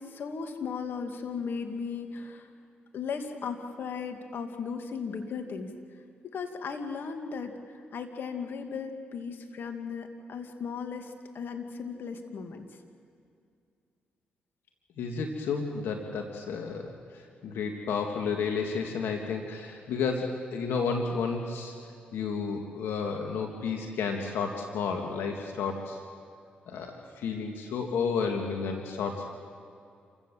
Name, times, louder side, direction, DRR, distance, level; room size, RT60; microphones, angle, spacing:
voice 1, 0.0-2.5 2.9-5.7 6.3-12.7, left 5 dB, 65° left, 5 dB, 2.3 m, -36 dB
voice 2, 15.0-16.9 17.4-21.7 22.1-26.0 26.7-29.2, left 5 dB, 80° left, 3 dB, 2.0 m, -31 dB
28.5 x 16.0 x 7.5 m, 2.4 s
supercardioid pair, 60°, 4 cm